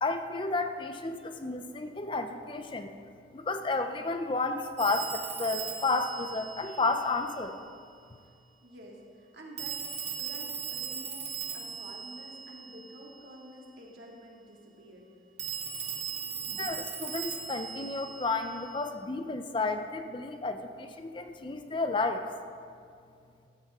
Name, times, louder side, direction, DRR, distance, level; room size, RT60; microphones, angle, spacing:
voice 1, 0.0-2.9 3.3-7.5 16.5-22.3, left 3 dB, 25° left, 7 dB, 0.5 m, -32 dB
Telephone, 4.8-7.4 9.6-13.2 15.4-18.9, right 7 dB, 35° right, 1.7 m, -38 dB
voice 2, 8.6-9.8 10.2-15.1 16.2-16.5, equal, 60° right, -2 dB, 2.3 m, -49 dB
14.5 x 13.5 x 3.6 m, 2.3 s
head